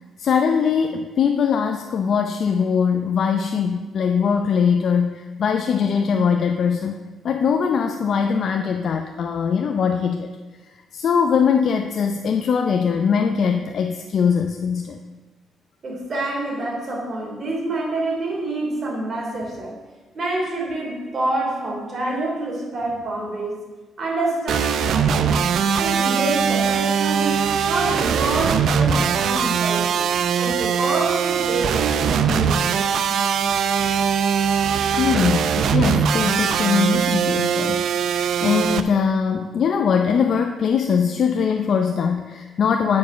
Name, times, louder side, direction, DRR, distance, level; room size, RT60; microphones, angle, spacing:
voice 1, 0.2-7.0 7.2-10.3 10.9-15.0 35.0-43.0, left 6 dB, 60° left, 5 dB, 0.6 m, -21 dB
voice 2, 15.8-19.8 20.1-23.5 24.0-25.5 25.7-30.1 30.4-33.0, right 2 dB, 50° right, -2 dB, 3.2 m, -27 dB
sound 1, 24.5-38.8, right 7 dB, 70° right, 0.5 m, -21 dB
9.3 x 5.3 x 6.5 m, 1.3 s
cardioid pair, 90°, 0 cm